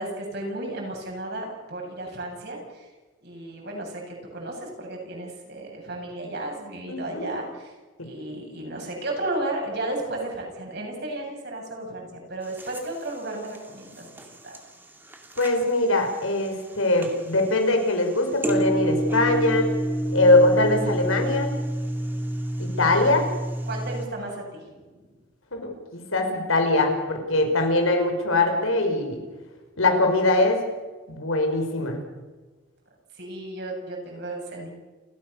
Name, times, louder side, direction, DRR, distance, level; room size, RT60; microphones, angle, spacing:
voice 1, 0.0-2.9 3.2-7.7 8.0-14.1 14.4-14.6 23.7-25.1 33.2-34.7, right 2 dB, 55° right, 0 dB, 7.7 m, -34 dB
voice 2, 6.9-7.3 15.4-19.7 20.1-21.5 22.6-23.3 25.5-29.2 29.8-30.6 31.1-32.0, left 2 dB, 90° left, 4 dB, 5.4 m, -22 dB
sound 1, 12.4-24.1, right 1 dB, 10° right, 2.5 m, -30 dB
29.5 x 15.0 x 6.8 m, 1.2 s
head